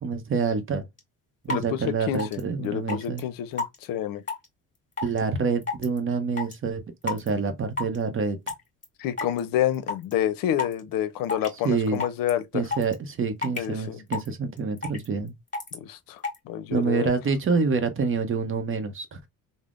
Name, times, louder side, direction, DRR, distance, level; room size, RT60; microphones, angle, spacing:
voice 1, 0.0-0.8 1.4-3.2 5.0-8.4 11.6-12.0 12.5-15.3 16.7-19.3, right 4 dB, 35° right, 0.7 m, -27 dB
sound 1, 1.0-1.1 1.5-1.6 2.1-2.4 2.9-3.2 3.6-3.8 4.3-4.5 5.0-5.2 5.6-6.0 6.4-6.6 7.1-7.3 7.8-8.0 8.5-8.8 9.2-9.4 9.7-10.1 10.6-10.8 11.3-11.6 11.9-12.3 12.7-12.9 13.4-13.7 14.1-14.3 14.6-15.1 15.5-15.7 16.2-16.4, left 3 dB, 20° left, 1.6 m, -29 dB
voice 2, 1.5-4.2 9.0-12.6 13.6-14.0 15.7-17.2, left 11 dB, 75° left, 0.6 m, -29 dB
3.3 x 2.0 x 2.4 m
cardioid pair, 90°, 34 cm